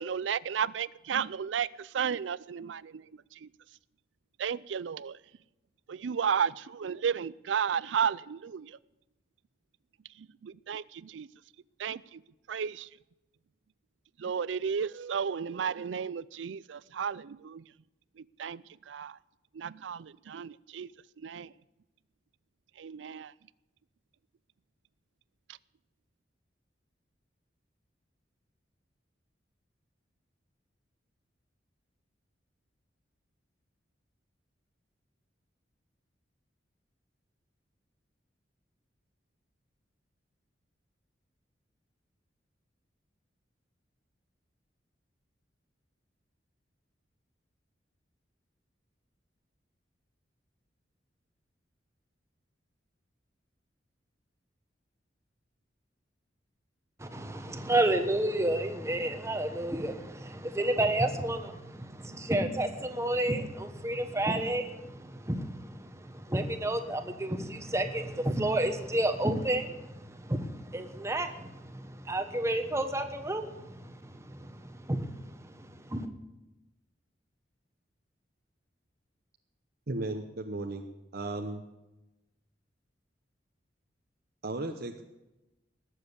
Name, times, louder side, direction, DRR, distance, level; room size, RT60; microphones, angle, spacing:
voice 1, 0.0-3.5 4.4-5.2 5.9-8.8 10.1-11.3 11.8-12.2 12.5-12.9 14.2-17.6 18.2-19.2 19.5-20.9 21.2-21.5 22.8-23.3 25.5-25.6, right 7 dB, 80° right, 21 dB, 0.4 m, -33 dB
voice 2, 57.0-76.1, right 1 dB, 15° right, 7 dB, 1.3 m, -31 dB
voice 3, 79.9-80.8 81.1-81.6 84.4-85.0, right 2 dB, 60° right, 4 dB, 0.9 m, -35 dB
19.0 x 7.6 x 8.3 m, 0.99 s
head